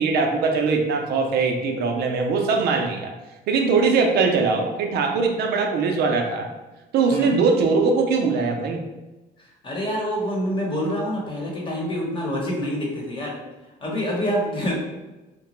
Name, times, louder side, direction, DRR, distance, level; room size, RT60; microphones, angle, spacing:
voice 1, 0.0-3.1 3.5-6.5 6.9-8.8, right 4 dB, 70° right, 2 dB, 0.5 m, -21 dB
voice 2, 7.1-7.4 9.4-13.4 13.8-14.7, equal, 30° left, -2 dB, 0.9 m, -26 dB
2.9 x 2.2 x 3.0 m, 1.1 s
cardioid pair, 110°, 17 cm